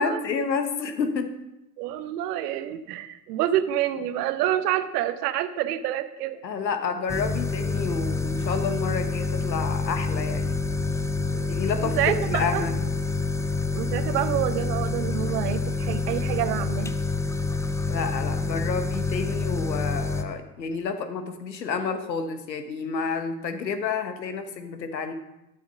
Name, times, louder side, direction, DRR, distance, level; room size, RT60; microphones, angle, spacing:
voice 1, 0.0-1.3 6.4-10.6 11.5-12.8 17.9-25.1, left 5 dB, 90° left, 8 dB, 1.2 m, -29 dB
voice 2, 1.8-6.4 11.3-11.5 11.8-12.7 13.7-16.9, right 12 dB, 70° right, 11 dB, 1.1 m, -27 dB
sound 1, 7.1-20.2, left 3 dB, 5° left, 0.5 m, -27 dB
12.5 x 6.3 x 5.5 m, 0.91 s
hypercardioid pair, 80°, 49 cm